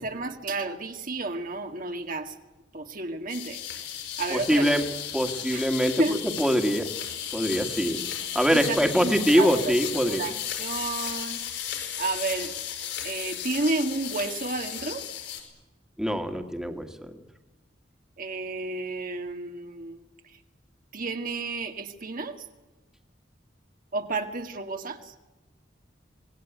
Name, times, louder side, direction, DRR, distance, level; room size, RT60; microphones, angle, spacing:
voice 1, 0.0-2.3 2.7-3.6 4.2-4.8 5.5-5.6 6.0-6.2 8.5-9.8 10.0-11.4 12.0-12.5 13.0-15.0 18.2-20.0 20.9-22.4 23.9-25.1, right 3 dB, 50° right, 5 dB, 1.9 m, -31 dB
sound 1, 3.3-15.4, left 9 dB, 70° left, 6.2 m, -34 dB
voice 2, 4.3-4.8 5.1-6.9 7.3-8.0 8.3-10.2 16.0-17.1, equal, 5° right, 5 dB, 2.0 m, -24 dB
26.0 x 19.0 x 9.4 m, 1.1 s
head